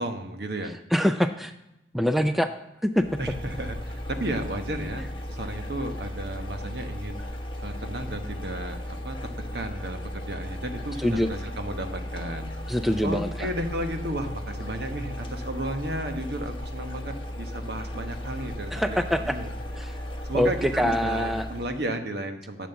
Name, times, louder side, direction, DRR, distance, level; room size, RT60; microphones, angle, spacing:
voice 1, 0.0-0.7 3.2-7.2 7.6-12.6 13.0-19.5 20.3-22.7, right 1 dB, 65° right, 6 dB, 1.2 m, -33 dB
voice 2, 0.9-1.5 1.9-2.5 2.8-3.0 11.0-11.3 12.7-13.5 18.7-19.4 19.8-19.9 20.3-21.5, equal, ahead, 8 dB, 0.4 m, -24 dB
sound 1, 2.9-21.9, left 1 dB, 30° left, 1.3 m, -36 dB
11.0 x 7.4 x 7.0 m, 0.87 s
head